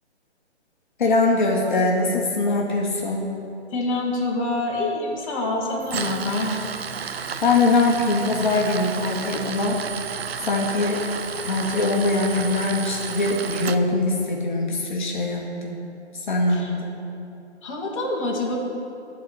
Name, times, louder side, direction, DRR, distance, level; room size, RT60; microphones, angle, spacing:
voice 1, 1.0-3.3 7.4-9.8 10.4-11.1 11.5-15.8 16.3-17.0, left 2 dB, 45° left, -1 dB, 1.2 m, -22 dB
voice 2, 3.7-6.6 16.5-16.7 17.6-18.6, left 2 dB, 30° left, -3 dB, 1.2 m, -26 dB
Tools, 5.8-13.8, right 6 dB, 65° right, 0.6 m, -32 dB
11.0 x 4.1 x 7.6 m, 2.7 s
hypercardioid pair, 165°, 34 cm